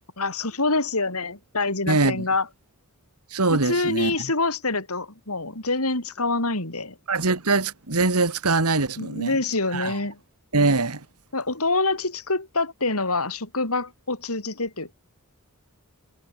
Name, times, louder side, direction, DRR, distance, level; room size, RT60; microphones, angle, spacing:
voice 1, 0.2-2.5 3.5-6.9 9.0-10.2 11.3-14.9, left 3 dB, 75° left, 6.3 m, -26 dB
voice 2, 1.9-2.2 3.3-4.1 7.1-9.4 9.7-10.0 10.5-11.0, right 3 dB, 85° right, 2.2 m, -23 dB
head